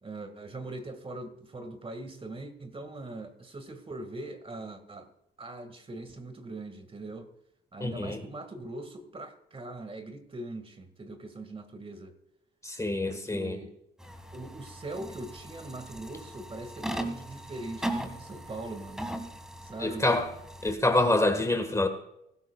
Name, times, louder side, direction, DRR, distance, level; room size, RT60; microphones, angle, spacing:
voice 1, 0.0-5.1 5.4-7.3 7.7-12.1 13.1-13.7 14.3-19.1 19.6-20.1, right 2 dB, 30° right, 8 dB, 2.0 m, -41 dB
voice 2, 7.8-8.2 12.6-13.6 19.8-20.3 20.6-21.9, left 2 dB, 15° left, 7 dB, 1.6 m, -26 dB
sound 1, 14.0-20.7, right 1 dB, 5° right, 1.9 m, -39 dB
20.5 x 12.5 x 2.4 m, 0.80 s
cardioid pair, 90°, 20 cm